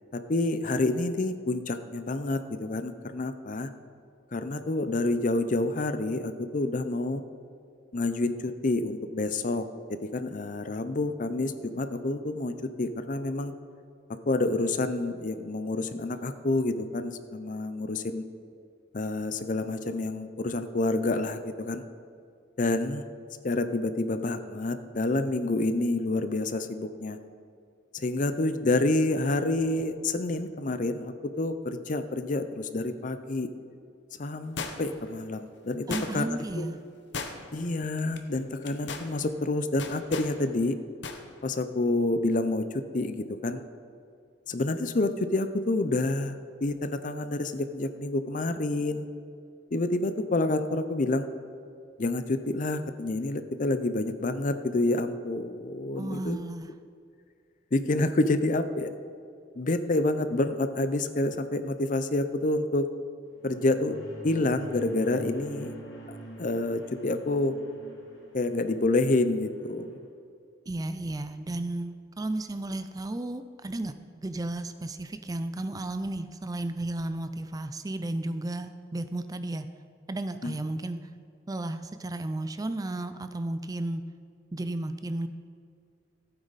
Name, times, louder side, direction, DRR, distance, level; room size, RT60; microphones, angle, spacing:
voice 1, 0.1-3.7 4.3-7.2 7.9-13.5 14.1-18.2 18.9-21.8 22.6-23.0 23.4-27.2 27.9-33.5 34.2-36.7 37.5-40.8 41.4-43.6 44.5-49.1 49.7-51.3 52.0-56.4 57.7-58.9 59.6-62.9 63.4-64.0 64.2-65.7 66.1-67.6 68.3-70.0 80.4-80.6, left 2 dB, 40° left, 10 dB, 0.6 m, -28 dB
sound 1, 34.6-35.1 35.9-36.4 37.1-37.7 38.0-38.2 38.6-39.1 39.8-40.3 41.0-41.2 41.5-41.6, left 4 dB, 65° left, 0.9 m, -36 dB
voice 2, 35.9-36.8 56.0-56.7 70.7-79.7 80.1-81.0 81.5-84.0 84.5-85.3, right 2 dB, 20° right, 10 dB, 0.4 m, -33 dB
sound 2, 63.4-70.0, right 1 dB, 80° left, 2.4 m, -46 dB
15.5 x 8.9 x 4.1 m, 2.2 s
head